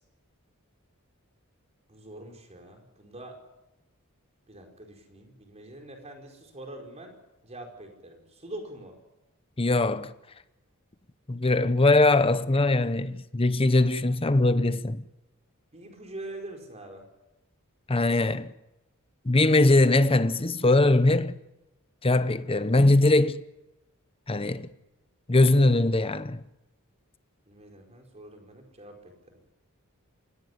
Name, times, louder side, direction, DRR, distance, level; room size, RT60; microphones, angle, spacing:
voice 1, 1.9-3.4 4.5-7.2 7.4-9.0 15.7-17.1 27.5-29.4, right 1 dB, 30° right, 4.8 m, -44 dB
voice 2, 9.6-10.1 11.3-15.0 17.9-18.5 19.2-21.4 22.0-23.4 24.3-24.7 25.3-26.4, left 2 dB, 25° left, 0.8 m, -21 dB
25.5 x 17.5 x 9.6 m
head